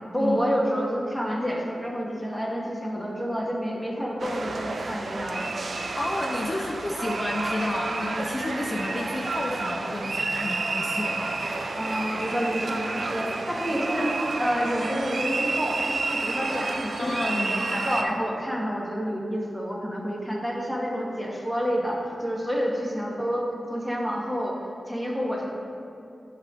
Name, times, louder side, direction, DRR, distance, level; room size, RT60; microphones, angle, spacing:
voice 1, 0.1-5.5 11.8-14.1 14.4-15.8 16.1-24.6 24.9-25.5, equal, ahead, -2 dB, 1.2 m, -29 dB
sound 1, 4.2-18.0, right 3 dB, 65° right, 0.4 m, -30 dB
voice 2, 6.0-11.5 17.0-17.9, left 2 dB, 35° left, 1 dB, 0.5 m, -31 dB
7.6 x 3.2 x 5.9 m, 2.6 s
cardioid pair, 65°, 0 cm